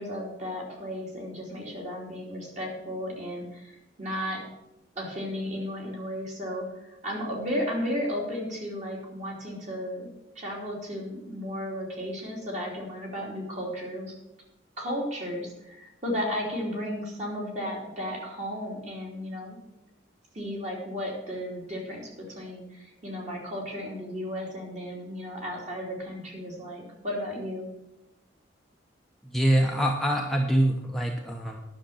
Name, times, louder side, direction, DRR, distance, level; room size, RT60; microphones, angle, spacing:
voice 1, 0.0-4.4 4.9-10.1 10.3-14.1 14.8-19.6 20.3-27.6, equal, 40° right, -2 dB, 3.0 m, -34 dB
voice 2, 29.3-31.6, right 1 dB, ahead, 0 dB, 0.8 m, -24 dB
10.5 x 6.5 x 7.2 m, 0.91 s
head